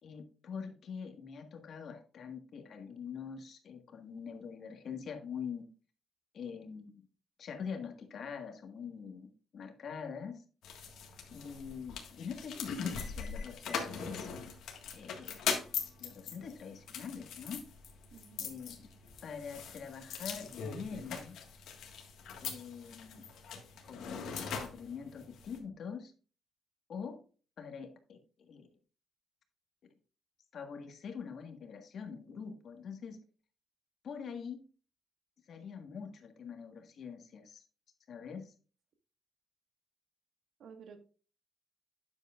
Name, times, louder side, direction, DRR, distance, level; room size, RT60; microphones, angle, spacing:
voice 1, 0.0-5.7 6.3-7.1 7.4-10.4 11.3-14.3 14.9-15.5 16.0-17.6 18.4-18.9 19.2-21.4 22.4-23.2 23.8-26.1 26.9-27.2 27.6-28.2 28.5-28.7 29.8-29.9 30.5-33.2 34.0-34.6 35.5-37.6 38.1-38.5, left 6 dB, 60° left, 5 dB, 1.6 m, -44 dB
sound 1, 10.6-25.6, left 6 dB, 80° left, 1.6 m, -41 dB
voice 2, 18.1-18.5 40.6-41.0, right 6 dB, 70° right, 6 dB, 1.5 m, -52 dB
9.5 x 7.5 x 2.4 m, 0.38 s
cardioid pair, 85°, 0 cm